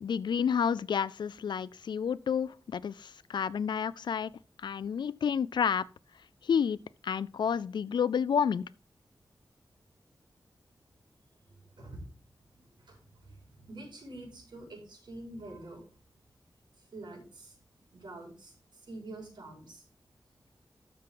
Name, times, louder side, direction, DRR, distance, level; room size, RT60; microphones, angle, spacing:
voice 1, 0.0-4.3 4.6-5.8 6.4-6.8 7.0-8.6, left 7 dB, 90° left, 0.3 m, -30 dB
voice 2, 12.8-15.8 16.9-17.5 17.9-19.8, right 2 dB, 85° right, 4.9 m, -46 dB
13.5 x 6.1 x 3.8 m
wide cardioid pair, 100°, 8 cm